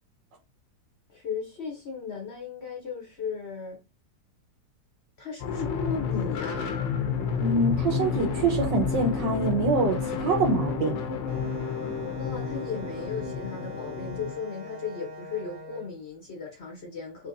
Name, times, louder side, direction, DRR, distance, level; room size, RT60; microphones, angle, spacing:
voice 1, 1.1-3.8 5.2-6.7 12.2-17.3, left 5 dB, 55° left, 0.7 m, -36 dB
sound 1, 5.4-14.3, left 6 dB, 80° left, 1.4 m, -30 dB
voice 2, 7.4-11.0, right 3 dB, 75° right, 1.7 m, -25 dB
Wind instrument woodwind instrument, 11.3-15.9, left 2 dB, 60° right, 0.9 m, -42 dB
4.1 x 3.0 x 2.5 m
omnidirectional pair, 2.0 m